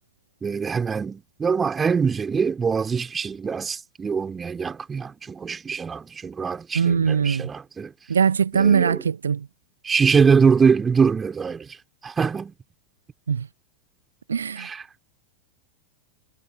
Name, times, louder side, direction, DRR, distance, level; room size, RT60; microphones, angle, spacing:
voice 1, 0.4-7.9 8.5-9.0 9.8-11.7 12.0-12.5 14.6-14.9, right 5 dB, 15° right, 3.8 m, -23 dB
voice 2, 6.7-7.5 8.1-9.5 13.3-13.5 14.3-14.7, right 6 dB, 70° right, 1.2 m, -21 dB
figure-of-eight pair, 90°, 0 cm